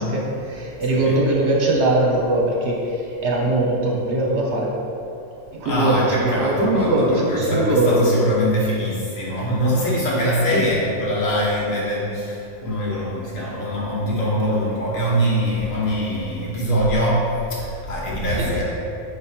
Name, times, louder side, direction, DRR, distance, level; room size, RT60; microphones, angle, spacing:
voice 1, 0.0-4.7 5.5-8.1 10.5-10.6 18.4-18.5, right 1 dB, 60° right, -2 dB, 1.2 m, -21 dB
voice 2, 0.9-1.2 5.6-17.2 17.5-18.6, equal, 80° left, -6 dB, 1.8 m, -23 dB
5.2 x 4.7 x 4.5 m, 2.8 s
omnidirectional pair, 1.4 m